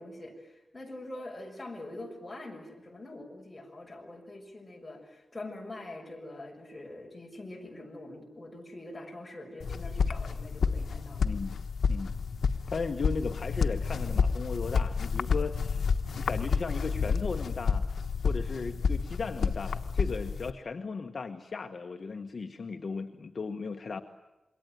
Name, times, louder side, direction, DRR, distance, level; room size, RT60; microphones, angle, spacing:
voice 1, 0.0-11.2, left 2 dB, 20° left, 1 dB, 6.7 m, -44 dB
sound 1, 9.6-20.5, left 5 dB, 85° left, 1.2 m, -30 dB
voice 2, 11.2-11.6 11.9-12.1 12.7-15.9 16.1-17.8 18.2-24.0, left 4 dB, 55° left, 5 dB, 1.3 m, -36 dB
27.5 x 22.5 x 9.3 m, 1.0 s
wide cardioid pair, 110°, 0 cm